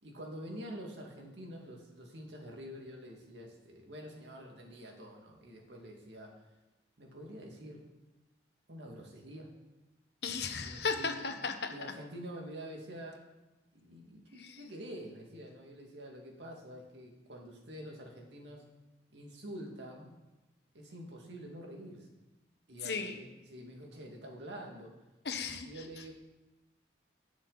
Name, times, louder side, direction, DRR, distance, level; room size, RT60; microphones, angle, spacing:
voice 1, 0.0-6.3 7.0-7.8 8.7-9.5 10.6-11.2 11.7-13.2 13.7-18.6 19.1-20.1 20.7-22.1 22.7-24.9 25.6-26.1, equal, 90° right, 1 dB, 2.1 m, -47 dB
voice 2, 10.2-11.7 14.4-14.6 22.8-23.2 25.2-26.0, left 4 dB, 70° left, 6 dB, 1.1 m, -36 dB
18.0 x 6.2 x 4.0 m, 1.0 s
head